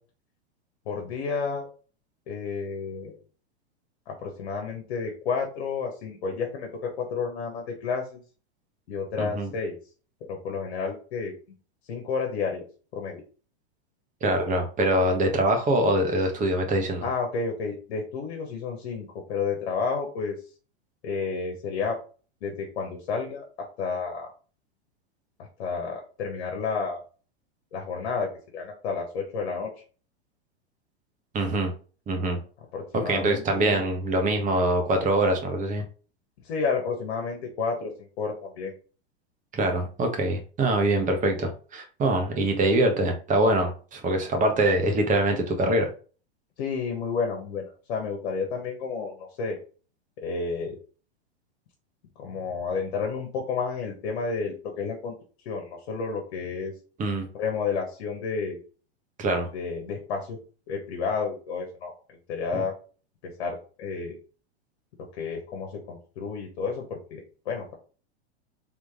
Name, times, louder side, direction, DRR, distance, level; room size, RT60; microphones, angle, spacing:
voice 1, 0.8-1.7 2.3-3.2 4.1-8.2 8.9-9.7 10.3-11.3 11.9-12.7 12.9-13.2 17.0-20.3 21.0-22.0 22.4-24.3 25.4-27.0 27.7-29.7 32.7-33.8 36.4-38.7 46.6-49.6 50.2-50.8 52.2-55.1 55.4-56.7 57.3-58.6 59.5-60.4 60.7-62.7 63.2-64.1 65.2-67.2 67.4-67.7, left 5 dB, 65° left, 2 dB, 1.4 m, -31 dB
voice 2, 9.2-9.5 14.2-17.1 31.3-31.7 32.1-32.4 32.9-35.8 39.5-45.9 57.0-57.3 59.2-59.5 62.5-62.6, right 1 dB, 25° right, 5 dB, 1.2 m, -24 dB
3.7 x 3.3 x 3.7 m, 0.38 s
hypercardioid pair, 115°, 33 cm